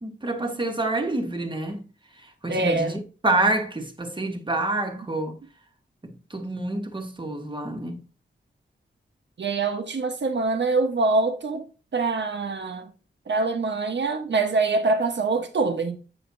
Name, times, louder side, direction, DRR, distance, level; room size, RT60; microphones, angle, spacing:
voice 1, 0.0-1.8 2.4-5.3 6.0-8.0, right 2 dB, 25° right, 1.2 m, -27 dB
voice 2, 2.5-3.0 9.4-11.6 11.9-12.9 13.3-16.0, right 3 dB, 65° right, 1.1 m, -24 dB
8.1 x 5.8 x 2.7 m
wide cardioid pair, 90°, 20 cm